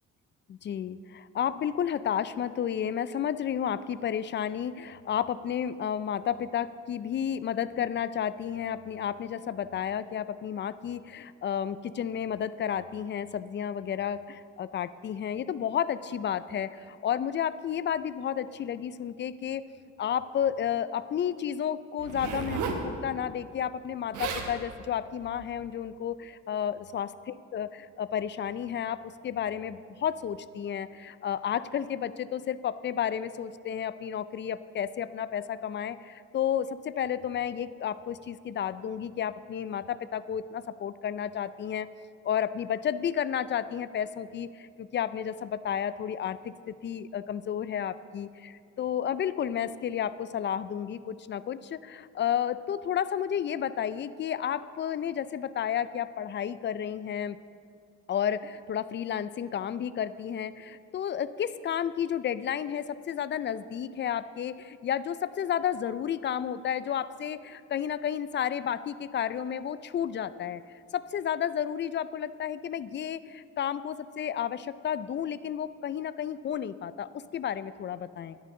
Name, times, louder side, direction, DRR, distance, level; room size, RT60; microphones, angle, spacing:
voice 1, 0.5-19.6 20.0-27.1 27.5-27.7 28.0-41.9 42.2-48.5 48.8-57.4 58.1-70.6 70.9-78.4, left 9 dB, 40° left, 15 dB, 0.4 m, -32 dB
Zipper (clothing), 22.0-22.9 23.8-23.9 24.1-24.5 25.2-25.5, right 5 dB, 90° right, 1.1 m, -33 dB
11.0 x 10.0 x 3.8 m, 2.3 s
cardioid pair, 90°, 30 cm